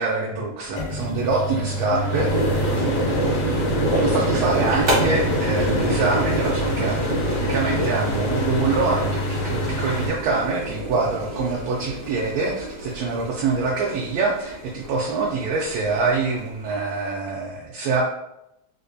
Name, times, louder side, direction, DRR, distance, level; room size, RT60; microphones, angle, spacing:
voice 1, 0.0-2.3 4.0-18.0, right 4 dB, 80° right, -3 dB, 1.5 m, -25 dB
sound 1, 0.8-10.1, equal, 90° left, 2.1 m, -27 dB
sound 2, 2.1-16.6, right 1 dB, 60° right, 0.9 m, -26 dB
4.7 x 2.1 x 2.5 m, 0.83 s
omnidirectional pair, 3.4 m